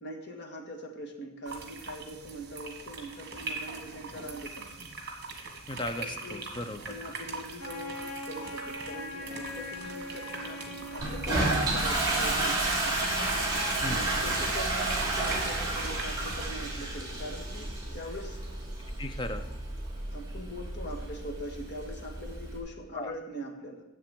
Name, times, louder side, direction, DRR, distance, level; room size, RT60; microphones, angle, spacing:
voice 1, 0.0-4.7 6.0-6.5 6.9-13.0 13.8-18.4 20.1-23.8, equal, 50° left, 2 dB, 1.7 m, -42 dB
sound 1, 1.5-16.4, right 3 dB, 45° right, 1.6 m, -42 dB
voice 2, 5.7-6.9 13.8-14.1 19.0-19.4 22.9-23.1, left 1 dB, 20° left, 8 dB, 0.6 m, -36 dB
Wind instrument woodwind instrument, 7.6-12.0, left 1 dB, 65° left, 2.2 m, -41 dB
Toilet flush, 11.0-22.6, right 2 dB, 20° right, 2.9 m, -31 dB
7.7 x 7.3 x 7.9 m, 0.95 s
head